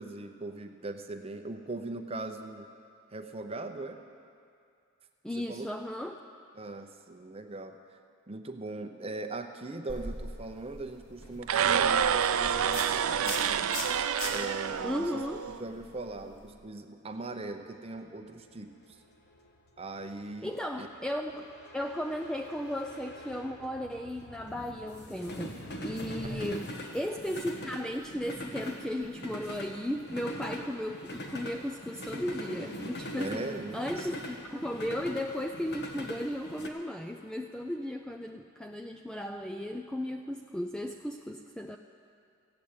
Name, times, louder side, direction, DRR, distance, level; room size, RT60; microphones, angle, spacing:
voice 1, 0.0-2.7 3.1-4.0 5.3-5.7 6.5-7.8 8.3-13.7 14.3-15.2 15.6-18.7 19.8-20.9 26.2-26.4 33.2-34.1, right 2 dB, 30° right, 6 dB, 0.7 m, -40 dB
voice 2, 5.2-6.2 14.8-15.5 20.4-41.8, equal, 5° left, 4 dB, 0.3 m, -35 dB
sound 1, 9.9-16.5, left 1 dB, 80° left, 2.5 m, -42 dB
sound 2, 11.4-15.6, right 8 dB, 75° right, 0.4 m, -28 dB
sound 3, 17.2-36.7, equal, 50° left, 1.3 m, -43 dB
15.0 x 7.9 x 8.8 m, 2.4 s
head